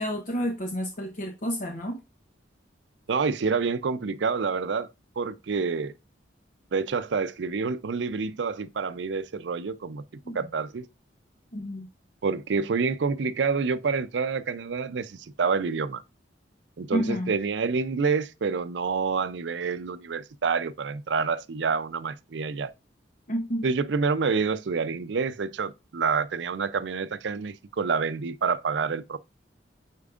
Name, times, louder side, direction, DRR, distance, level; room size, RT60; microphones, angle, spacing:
voice 1, 0.0-2.0 10.2-10.5 11.5-11.9 16.9-17.3 23.3-23.7, equal, 45° left, 0.8 m, -30 dB
voice 2, 3.1-4.9 5.2-5.9 6.7-10.0 10.3-10.9 12.2-16.0 16.8-22.7 23.6-29.2, right 5 dB, 80° right, 0.5 m, -28 dB
8.3 x 4.6 x 2.5 m
head